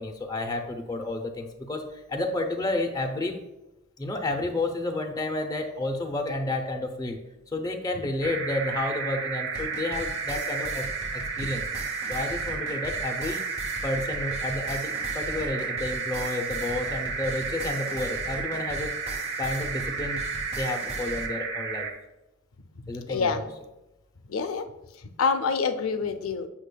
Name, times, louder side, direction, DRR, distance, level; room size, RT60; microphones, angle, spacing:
voice 1, 0.0-3.4 4.0-7.2 7.5-10.8 11.1-11.6 12.1-13.4 13.8-18.9 19.4-20.2 20.5-21.9 22.9-23.5, left 2 dB, 20° left, 3 dB, 0.5 m, -31 dB
sound 1, 8.2-21.9, right 5 dB, 65° right, 0.8 m, -32 dB
sound 2, 9.5-21.3, right 1 dB, 30° right, 1.2 m, -40 dB
voice 2, 23.1-23.4 24.3-24.7 25.2-26.5, left 5 dB, 70° left, 9 dB, 0.5 m, -26 dB
8.1 x 5.9 x 2.2 m, 0.94 s
head